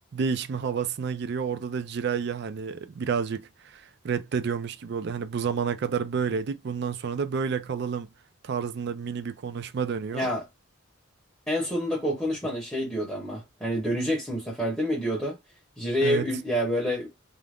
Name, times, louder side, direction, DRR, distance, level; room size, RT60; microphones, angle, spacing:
voice 1, 0.1-8.1 8.4-10.3 16.0-16.3, right 6 dB, 55° right, 0.4 m, -30 dB
voice 2, 10.1-10.4 11.5-15.4 15.8-17.1, equal, 5° left, 0.9 m, -28 dB
2.5 x 2.1 x 3.3 m
head